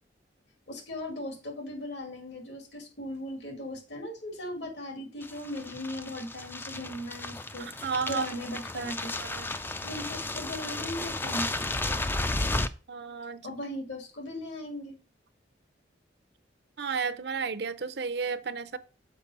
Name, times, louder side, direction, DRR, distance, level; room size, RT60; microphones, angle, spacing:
voice 1, 0.7-9.1 9.8-11.5 13.4-15.0, left 1 dB, 70° left, 2.1 m, -38 dB
sound 1, 5.2-12.7, left 2 dB, 10° left, 0.3 m, -33 dB
voice 2, 7.6-8.3 8.7-8.9 9.2-9.5 12.9-13.4 16.8-18.8, right 5 dB, 60° right, 0.6 m, -33 dB
6.7 x 4.9 x 5.3 m
head